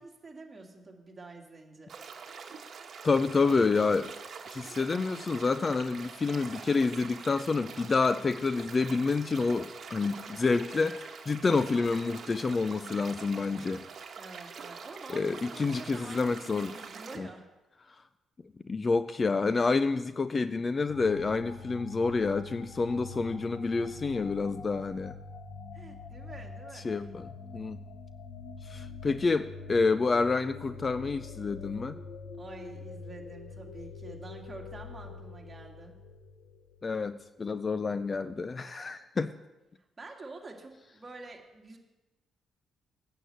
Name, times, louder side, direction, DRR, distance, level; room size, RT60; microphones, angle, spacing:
voice 1, 0.0-1.9 14.2-17.5 25.7-26.9 32.4-35.9 39.8-41.8, right 3 dB, 25° right, 1 dB, 2.1 m, -47 dB
sound 1, 1.9-17.2, right 6 dB, 55° right, 1.3 m, -45 dB
voice 2, 3.0-4.1 4.5-13.8 15.1-16.7 17.2-17.3 18.7-25.2 26.7-27.8 28.6-32.0 36.8-39.3, left 4 dB, 30° left, 13 dB, 0.4 m, -28 dB
sound 2, 20.9-37.2, left 4 dB, 75° left, 1.1 m, -45 dB
9.1 x 6.5 x 7.9 m, 1.1 s
cardioid pair, 90°, 0 cm